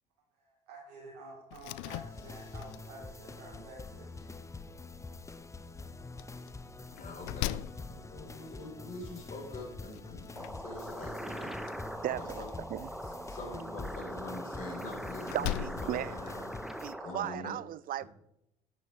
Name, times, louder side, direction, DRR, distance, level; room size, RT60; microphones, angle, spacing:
voice 1, 0.4-4.2, right 2 dB, 75° right, 2.9 m, -50 dB
Slam, 1.5-16.6, left 16 dB, 65° left, 0.4 m, -44 dB
sound 1, 1.9-16.9, left 3 dB, 15° left, 0.7 m, -46 dB
voice 2, 6.9-7.6 7.9-11.8 12.1-12.5 13.0-16.5 17.0-17.5, left 2 dB, 40° left, 4.8 m, -45 dB
sound 2, 10.4-17.4, right 1 dB, ahead, 1.1 m, -42 dB
voice 3, 12.0-12.4 12.7-13.2 15.3-16.2 16.8-18.0, right 13 dB, 45° right, 0.5 m, -36 dB
10.5 x 9.7 x 3.6 m
hypercardioid pair, 60°, 20 cm